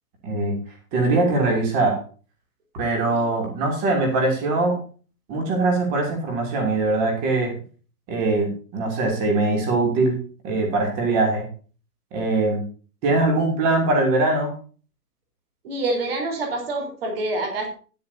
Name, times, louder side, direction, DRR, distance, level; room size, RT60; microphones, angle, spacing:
voice 1, 0.2-0.6 0.9-2.0 2.7-4.8 5.3-7.5 8.1-10.2 10.4-11.5 12.1-12.6 13.0-14.5, right 2 dB, 15° right, 2 dB, 2.8 m, -22 dB
voice 2, 15.6-17.7, right 2 dB, 35° right, 3 dB, 4.1 m, -27 dB
15.0 x 10.5 x 2.7 m, 0.37 s
hypercardioid pair, 170°, 47 cm